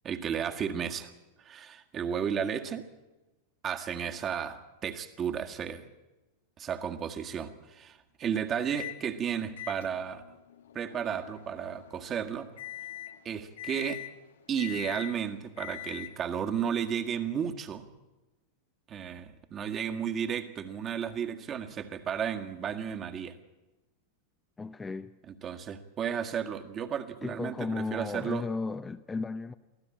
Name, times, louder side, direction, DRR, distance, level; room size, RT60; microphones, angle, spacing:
voice 1, 0.0-1.1 1.4-2.8 3.6-5.8 6.6-10.2 10.7-12.5 13.2-14.0 14.5-17.8 18.9-23.3 25.4-28.4, right 8 dB, 25° right, 1.8 m, -33 dB
Microwave oven, 8.8-9.0 9.6-16.4, left 14 dB, 65° left, 1.1 m, -44 dB
voice 2, 24.6-25.1 27.2-29.5, left 3 dB, 15° left, 0.7 m, -34 dB
23.5 x 15.5 x 8.8 m
figure-of-eight pair, 90°, 0 cm